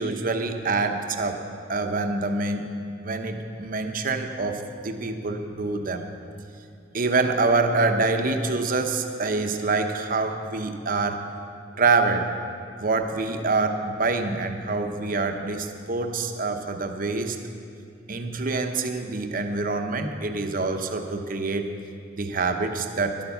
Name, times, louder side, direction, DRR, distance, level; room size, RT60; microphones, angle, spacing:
voice 1, 0.0-1.4 1.7-2.7 3.0-6.1 6.9-11.2 11.8-12.3 12.8-17.4 18.1-21.7 22.1-23.2, right 3 dB, 45° right, 5 dB, 0.9 m, -26 dB
11.5 x 11.5 x 7.0 m, 2.4 s
head